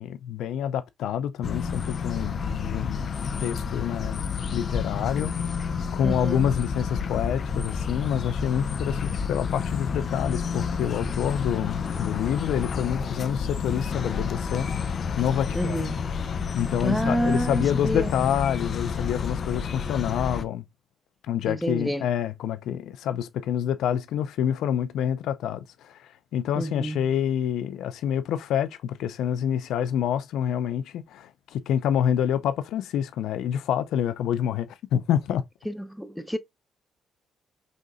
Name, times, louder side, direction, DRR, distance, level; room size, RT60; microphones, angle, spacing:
voice 1, 0.0-4.2 4.5-5.3 5.9-14.7 15.2-15.8 16.5-20.6 21.2-35.4, left 9 dB, 80° left, 0.6 m, -27 dB
sound 1, 1.4-20.4, left 6 dB, 50° left, 0.7 m, -30 dB
voice 2, 6.0-6.5 15.5-16.1 16.8-18.1 21.5-22.1 26.6-27.0 35.6-36.4, equal, ahead, 0.8 m, -28 dB
5.3 x 3.7 x 2.3 m
cardioid pair, 90°, 0 cm